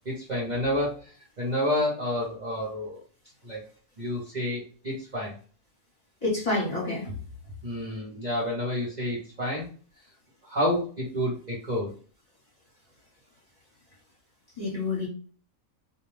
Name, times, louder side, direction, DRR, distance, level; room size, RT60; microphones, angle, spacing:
voice 1, 0.0-1.1 1.4-3.0 3.4-3.6 4.0-5.3 7.6-9.7 10.4-11.9, left 1 dB, 40° right, -5 dB, 0.7 m, -29 dB
voice 2, 6.2-7.1 14.6-15.1, left 2 dB, 30° left, -6 dB, 1.1 m, -28 dB
2.4 x 2.2 x 3.1 m, 0.41 s
omnidirectional pair, 1.4 m